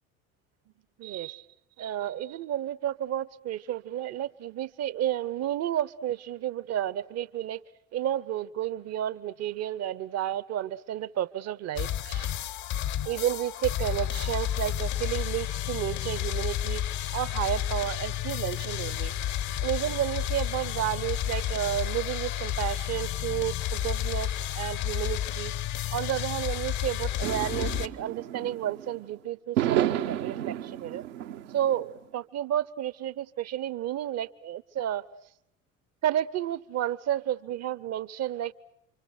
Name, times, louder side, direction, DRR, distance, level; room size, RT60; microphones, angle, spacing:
voice 1, 1.0-1.4 1.8-7.6 7.9-12.3 13.1-16.8 17.1-19.1 19.6-25.5 25.9-31.0 31.5-35.1 36.0-38.5, right 11 dB, 40° right, 19 dB, 0.9 m, -31 dB
sound 1, 11.8-27.9, left 11 dB, 45° left, 1.0 m, -31 dB
sound 2, 27.2-29.0 29.6-31.8, right 12 dB, 70° right, 1.1 m, -31 dB
29.0 x 25.5 x 6.6 m, 0.78 s
figure-of-eight pair, 65°, 39 cm